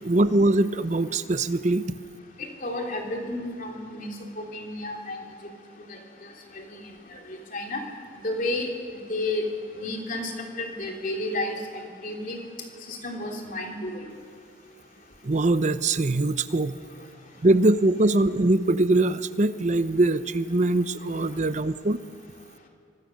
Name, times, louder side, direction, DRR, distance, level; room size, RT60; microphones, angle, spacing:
voice 1, 0.0-1.8 15.2-16.8 17.4-22.0, right 2 dB, 35° right, 13 dB, 0.6 m, -22 dB
voice 2, 2.4-5.2 5.9-6.0 6.5-6.8 7.3-7.8 8.2-8.7 9.1-9.4 9.8-10.3 10.6-12.4 12.9-14.0, left 1 dB, 40° left, 1 dB, 3.0 m, -31 dB
25.0 x 20.0 x 6.3 m, 2.2 s
head